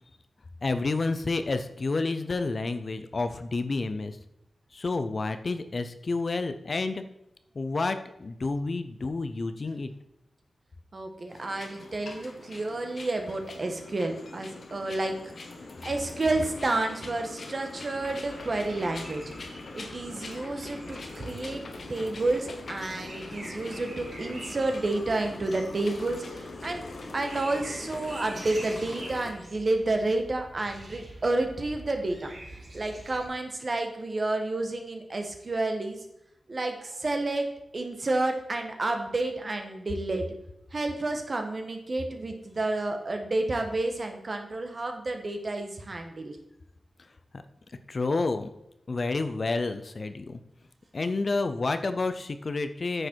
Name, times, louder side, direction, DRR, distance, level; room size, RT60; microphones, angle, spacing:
voice 1, 0.6-4.2 4.7-7.0 7.5-9.9 47.3-47.4 47.9-48.5 48.9-50.4 50.9-53.1, left 3 dB, 45° left, 9 dB, 0.6 m, -29 dB
voice 2, 10.9-15.3 15.8-19.2 19.7-21.6 21.9-26.9 27.1-32.3 32.7-36.0 36.5-40.3 40.7-46.4, right 2 dB, 40° right, 4 dB, 1.4 m, -30 dB
sound 1, 11.3-29.3, left 3 dB, 60° left, 1.3 m, -42 dB
sound 2, 18.0-33.3, right 1 dB, 55° right, 3.3 m, -46 dB
9.6 x 6.5 x 4.6 m, 0.83 s
wide cardioid pair, 110°, 0 cm